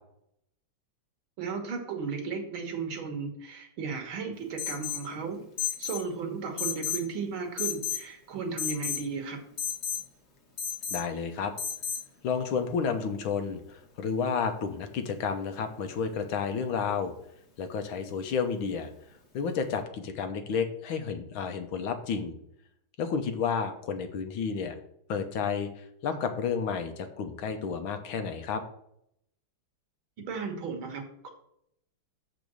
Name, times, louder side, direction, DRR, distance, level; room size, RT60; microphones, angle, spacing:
voice 1, 1.4-5.4 5.8-9.4 30.3-31.3, right 5 dB, 75° right, 3 dB, 2.2 m, -35 dB
Alarm, 4.6-5.1 5.6-6.0 6.6-7.1 7.6-8.0 8.6-9.0 9.6-10.0 10.6-11.0 11.6-12.0, left 7 dB, 35° left, 1.6 m, -32 dB
voice 2, 10.9-11.5 12.2-17.1 17.6-18.9 19.3-22.3 23.0-24.8 25.1-28.6, left 6 dB, 75° left, 7 dB, 1.7 m, -31 dB
7.0 x 5.2 x 6.2 m, 0.75 s
omnidirectional pair, 2.2 m